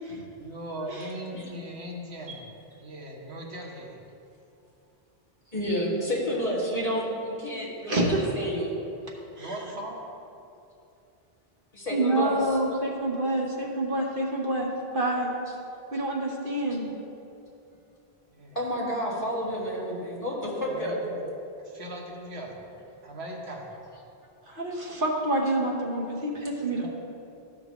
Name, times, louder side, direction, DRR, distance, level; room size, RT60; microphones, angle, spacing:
voice 1, 0.3-2.4 2.8-4.0 9.4-10.1 18.3-18.6 20.6-22.6 23.0-23.7 26.7-26.9, right 1 dB, 85° right, -1 dB, 1.4 m, -39 dB
voice 2, 5.5-8.8 11.7-12.4 16.8-16.9 18.6-21.0, equal, 35° left, -5 dB, 2.1 m, -30 dB
voice 3, 7.9-8.2 9.4-9.5 11.9-14.7 14.9-15.3 15.9-16.8 24.5-26.8, right 1 dB, 55° right, -1 dB, 1.1 m, -27 dB
14.0 x 5.9 x 3.0 m, 2.7 s
omnidirectional pair, 1.1 m